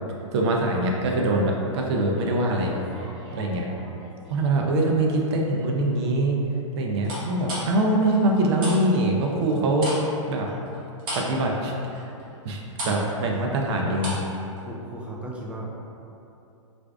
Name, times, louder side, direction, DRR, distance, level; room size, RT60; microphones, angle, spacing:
voice 1, 0.3-2.8 3.3-3.7 4.3-6.4 6.8-9.9 10.3-10.5 11.1-11.7 12.0-12.1 12.4-14.2, right 1 dB, 55° right, 0 dB, 0.5 m, -23 dB
sound 1, 2.6-4.4 4.8-5.3 7.0-8.8 9.1-14.3 14.6-14.7, right 1 dB, 30° right, 1.1 m, -36 dB
voice 2, 14.6-15.7, right 1 dB, 5° right, -3 dB, 0.3 m, -36 dB
4.5 x 2.5 x 2.3 m, 2.8 s
hypercardioid pair, 130°, 17 cm